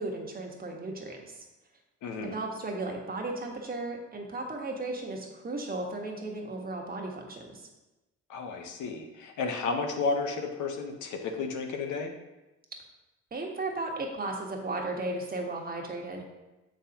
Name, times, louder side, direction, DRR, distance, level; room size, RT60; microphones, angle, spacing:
voice 1, 0.0-1.4 2.2-7.6 13.3-16.2, right 2 dB, 30° right, 1 dB, 1.3 m, -35 dB
voice 2, 2.0-2.4 8.3-12.1, left 4 dB, 80° left, 4 dB, 1.0 m, -32 dB
7.1 x 5.3 x 2.9 m, 1.0 s
cardioid pair, 90°, 30 cm